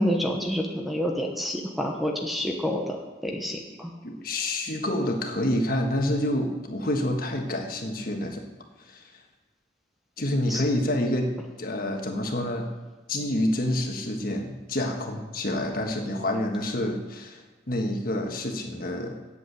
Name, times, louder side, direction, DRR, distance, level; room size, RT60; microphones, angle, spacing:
voice 1, 0.0-3.0 3.2-3.9 10.5-10.6, equal, ahead, 1 dB, 1.0 m, -28 dB
voice 2, 4.0-8.4 8.9-9.0 10.2-11.3 11.6-12.7 13.1-17.4 17.7-19.2, left 1 dB, 50° left, 3 dB, 1.4 m, -28 dB
8.2 x 8.1 x 7.9 m, 1.2 s
head